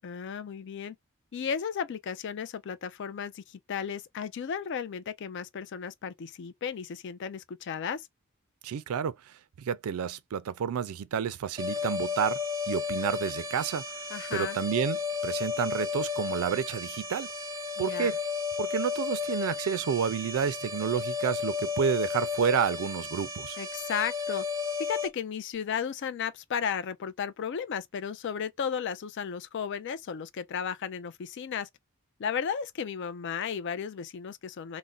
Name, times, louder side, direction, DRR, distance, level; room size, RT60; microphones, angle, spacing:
voice 1, 0.0-1.0 1.3-8.1 14.1-14.6 17.8-18.1 23.6-24.4 24.8-31.7 32.2-34.8, left 7 dB, 55° left, 0.4 m, -34 dB
voice 2, 8.6-12.4 12.7-17.3 17.8-18.2 18.6-23.6, right 7 dB, 80° right, 0.4 m, -30 dB
sound 1, 11.6-25.1, left 5 dB, 15° right, 0.7 m, -33 dB
2.4 x 2.1 x 3.8 m
head